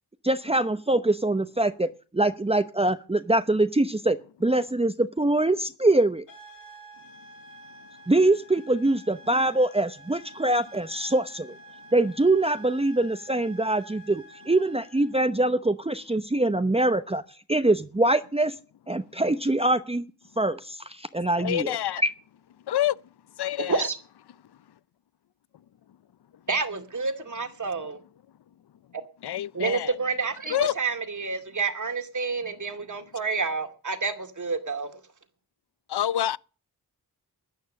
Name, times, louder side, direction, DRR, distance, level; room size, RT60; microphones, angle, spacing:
voice 1, 0.2-6.2 8.1-11.5 11.9-17.2 17.5-18.5 18.9-20.1 20.4-22.1, right 2 dB, 15° right, 0.8 m, -24 dB
sound 1, 6.3-15.2, right 1 dB, 55° left, 4.2 m, -49 dB
voice 2, 21.4-22.0 22.7-23.0 23.4-23.8 29.2-29.9 30.5-30.7 35.9-36.4, left 12 dB, 80° left, 0.6 m, -27 dB
voice 3, 26.5-28.0 29.5-35.0, right 4 dB, 50° right, 2.3 m, -29 dB
14.0 x 9.4 x 6.5 m
cardioid pair, 65°, 39 cm